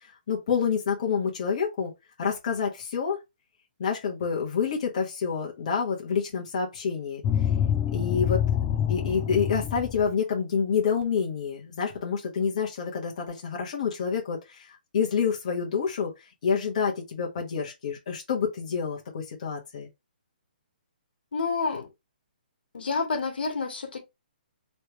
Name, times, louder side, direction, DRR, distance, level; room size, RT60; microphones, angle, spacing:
voice 1, 0.3-1.9 2.2-3.2 3.8-7.2 7.9-8.4 8.9-16.1 16.4-19.9, left 6 dB, 45° left, 1.2 m, -28 dB
sound 1, 7.2-10.1, left 9 dB, 15° left, 0.3 m, -26 dB
voice 2, 21.3-21.9 22.7-24.0, left 4 dB, 85° left, 1.5 m, -29 dB
3.2 x 3.1 x 3.0 m
hypercardioid pair, 170°, 5 cm